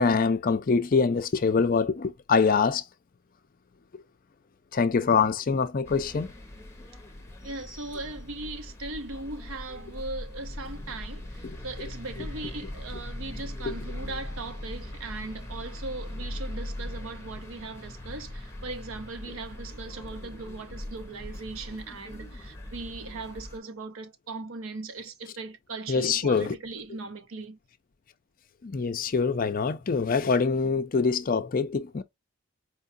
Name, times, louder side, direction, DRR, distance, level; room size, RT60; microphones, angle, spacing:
voice 1, 0.0-2.8 4.7-6.3 11.4-11.6 13.7-13.8 25.9-26.5 28.6-32.0, left 5 dB, 40° left, 0.4 m, -24 dB
sound 1, 5.8-23.6, left 1 dB, 10° left, 0.8 m, -40 dB
voice 2, 7.4-27.6, right 3 dB, 75° right, 0.7 m, -39 dB
4.5 x 2.3 x 2.5 m
head